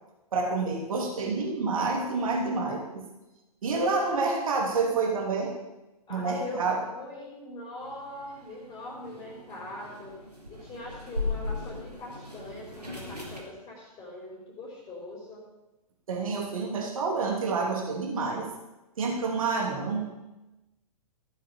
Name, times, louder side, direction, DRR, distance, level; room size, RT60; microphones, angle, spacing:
voice 1, 0.3-3.0 3.6-5.5 6.1-6.8 16.1-18.5 19.0-20.1, right 4 dB, 60° right, 0 dB, 3.3 m, -28 dB
voice 2, 6.1-10.1 10.5-15.4, left 1 dB, 15° left, -2 dB, 3.7 m, -41 dB
sound 1, 7.8-13.4, left 3 dB, 90° right, 3.6 m, -38 dB
15.0 x 7.8 x 7.1 m, 1.0 s
figure-of-eight pair, 115°, 20 cm